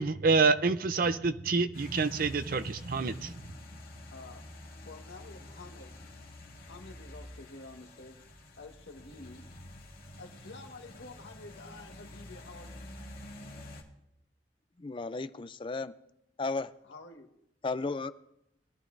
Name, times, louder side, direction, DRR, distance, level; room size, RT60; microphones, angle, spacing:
voice 1, 0.0-3.3, right 4 dB, 50° right, 12 dB, 0.6 m, -27 dB
sound 1, 1.7-13.8, left 1 dB, 55° left, 2.0 m, -48 dB
voice 2, 4.1-4.5 4.8-6.0 6.6-8.3 8.6-9.5 10.2-12.9 16.9-17.3, left 3 dB, 85° left, 3 dB, 1.5 m, -49 dB
voice 3, 14.8-15.9 16.4-16.7 17.6-18.1, left 3 dB, 30° left, 13 dB, 0.4 m, -34 dB
21.5 x 11.5 x 2.6 m, 0.81 s
head